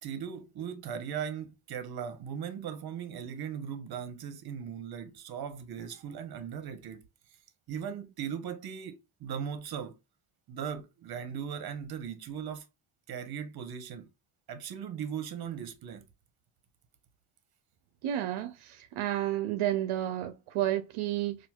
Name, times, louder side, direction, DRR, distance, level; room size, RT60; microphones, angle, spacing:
voice 1, 0.0-7.0 7.7-10.0 10.5-12.6 13.1-14.1 14.5-16.0, right 8 dB, 50° right, 0.9 m, -38 dB
voice 2, 18.0-21.4, right 13 dB, 75° right, 0.7 m, -31 dB
4.3 x 2.6 x 2.3 m
cardioid pair, 110°, 50 cm